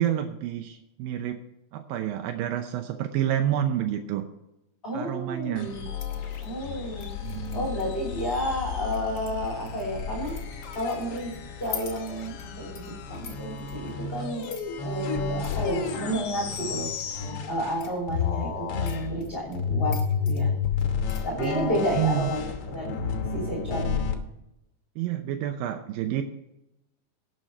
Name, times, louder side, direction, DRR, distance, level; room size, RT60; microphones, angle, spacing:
voice 1, 0.0-1.4 1.7-4.3 4.9-5.7 7.2-7.7 21.3-22.3 25.0-26.2, right 11 dB, 85° right, 5 dB, 2.6 m, -29 dB
voice 2, 4.8-5.9 6.4-7.1 7.5-10.3 10.7-11.3 11.6-14.5 14.8-16.9 17.5-20.0 20.2-20.5 21.2-23.0 23.3-24.0, equal, 15° left, -3 dB, 2.7 m, -31 dB
sound 1, 5.6-17.8 18.1-24.1, left 6 dB, 55° left, 1.7 m, -32 dB
sound 2, 5.9-22.0, left 7 dB, 40° left, 1.7 m, -46 dB
18.0 x 6.3 x 4.3 m, 0.88 s
omnidirectional pair, 4.1 m